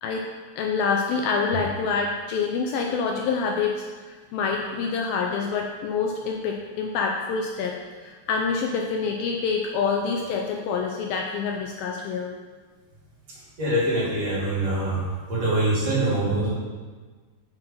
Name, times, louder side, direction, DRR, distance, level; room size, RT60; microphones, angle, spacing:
voice 1, 0.0-12.3, left 5 dB, 85° left, 1 dB, 2.2 m, -27 dB
voice 2, 13.3-15.0 15.3-16.5, right 1 dB, 40° right, -8 dB, 3.4 m, -24 dB
7.9 x 6.0 x 5.5 m, 1.4 s
omnidirectional pair, 4.8 m